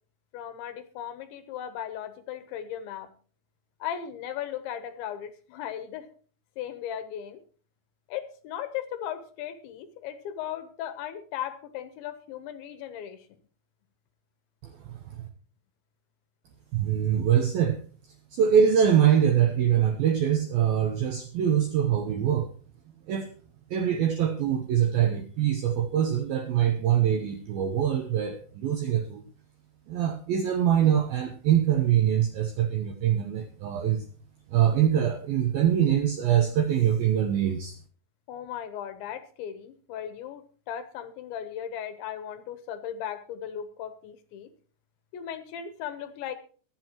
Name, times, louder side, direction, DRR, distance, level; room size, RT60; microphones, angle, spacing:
voice 1, 0.3-3.1 3.8-6.1 6.6-7.4 8.1-13.3 38.3-44.5 45.1-46.3, left 10 dB, 75° left, 10 dB, 3.2 m, -37 dB
voice 2, 14.6-15.3 16.7-17.8 18.3-22.5 23.1-23.3 23.7-29.2 29.9-34.1 34.5-37.8, right 9 dB, 80° right, 6 dB, 2.1 m, -24 dB
23.0 x 7.9 x 3.0 m, 0.41 s
omnidirectional pair, 5.7 m